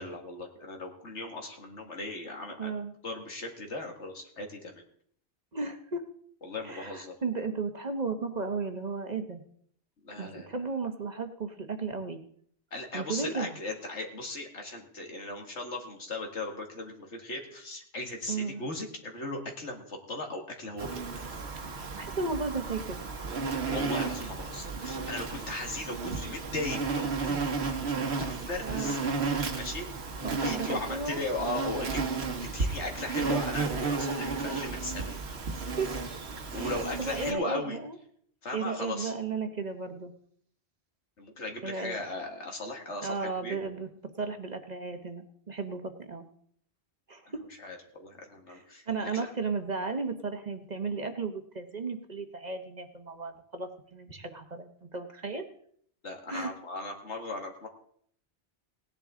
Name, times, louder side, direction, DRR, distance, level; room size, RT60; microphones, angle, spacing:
voice 1, 0.0-2.7 3.0-4.8 6.4-7.1 10.0-10.5 12.7-21.3 23.7-27.4 28.2-29.2 29.6-32.0 32.5-35.3 36.5-37.8 38.4-39.1 41.2-43.6 47.3-49.3 56.0-57.7, left 2 dB, 85° left, 2 dB, 2.3 m, -37 dB
voice 2, 2.6-2.9 5.5-6.0 6.6-9.4 10.1-12.2 12.9-13.5 18.3-18.6 21.6-23.0 28.6-29.0 30.2-31.2 35.8-35.9 36.5-38.0 38.5-40.1 41.6-42.0 43.0-43.9 44.2-46.3 47.1-47.4 48.5-55.4 56.3-56.5, right 4 dB, 40° right, 6 dB, 1.1 m, -34 dB
Insect, 20.8-37.3, right 4 dB, 65° right, 1.5 m, -33 dB
17.5 x 10.5 x 3.8 m, 0.62 s
omnidirectional pair, 1.2 m